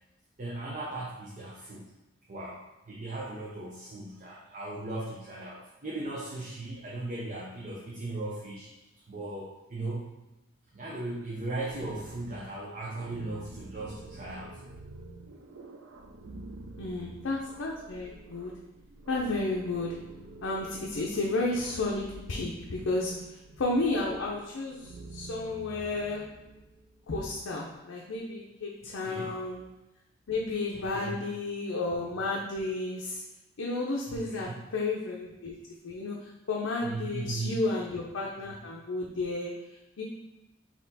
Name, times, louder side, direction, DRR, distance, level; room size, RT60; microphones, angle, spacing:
voice 1, 0.4-1.9 2.3-8.7 9.1-10.1 10.7-14.6 29.0-29.4 30.7-31.2 34.1-34.5 36.8-37.6, right 2 dB, 40° right, -5 dB, 0.6 m, -37 dB
sound 1, 11.4-27.2, right 2 dB, 85° right, 0.5 m, -48 dB
voice 2, 16.8-18.5 19.1-19.9 20.4-23.1 23.6-26.2 27.1-29.6 30.3-33.2 33.6-35.6 35.8-39.5 40.0-40.1, left 2 dB, 80° left, -2 dB, 0.6 m, -32 dB
4.3 x 2.9 x 4.0 m, 0.97 s
head